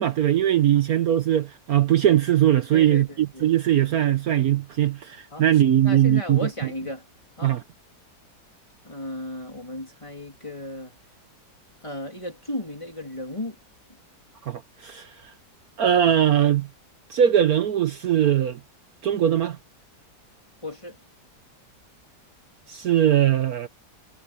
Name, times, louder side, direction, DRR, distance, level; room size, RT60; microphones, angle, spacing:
voice 1, 0.0-6.4 7.4-7.6 14.4-15.1 15.8-16.7 17.1-18.6 19.0-19.6 22.7-23.7, right 11 dB, 60° right, 1.3 m, -20 dB
voice 2, 2.7-3.5 5.3-7.1 7.4-7.6 8.8-10.9 11.8-13.6 20.6-21.0, left 1 dB, 15° left, 3.1 m, -35 dB
omnidirectional pair, 1.8 m